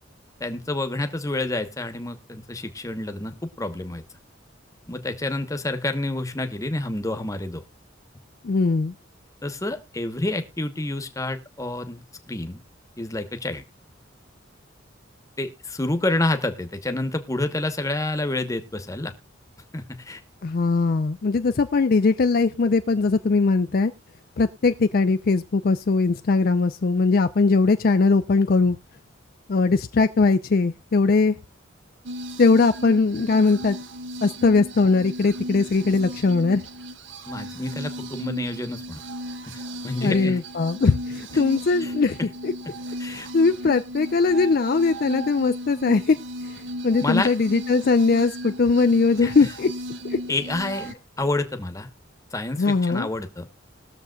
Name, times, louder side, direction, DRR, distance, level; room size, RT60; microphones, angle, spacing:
voice 1, 0.4-4.0 4.9-7.6 9.4-12.6 13.0-13.6 15.4-19.1 19.7-20.2 37.3-39.0 39.5-40.4 41.3-41.4 41.8-41.9 42.2-42.3 43.0-43.3 47.0-47.3 49.2-49.3 50.3-50.9 51.2-51.9 52.3-53.5, left 2 dB, 15° left, 8 dB, 1.1 m, -28 dB
voice 2, 8.4-8.9 20.4-23.9 24.4-28.8 29.5-31.4 32.4-33.8 34.2-36.6 40.0-42.2 42.4-42.5 43.3-46.2 46.8-49.7 52.6-53.1, left 4 dB, 50° left, 9 dB, 0.4 m, -20 dB
sound 1, 32.0-50.9, equal, 80° right, 1.1 m, -35 dB
21.0 x 7.0 x 2.3 m, 0.27 s
head